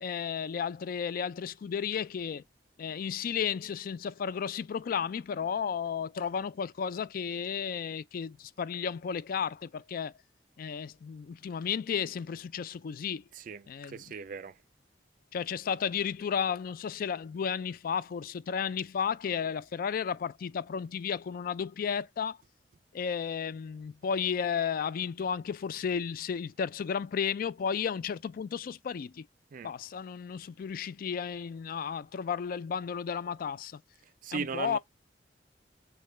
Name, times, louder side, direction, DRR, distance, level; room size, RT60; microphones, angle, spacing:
voice 1, 0.0-2.4 2.8-10.1 10.6-13.2 13.7-14.0 15.3-22.4 22.9-29.3 29.6-33.8 34.3-34.8, left 7 dB, 55° left, 0.3 m, -33 dB
voice 2, 13.3-14.6 29.5-29.7 34.2-34.8, right 5 dB, 50° right, 0.4 m, -38 dB
6.5 x 2.2 x 3.3 m
head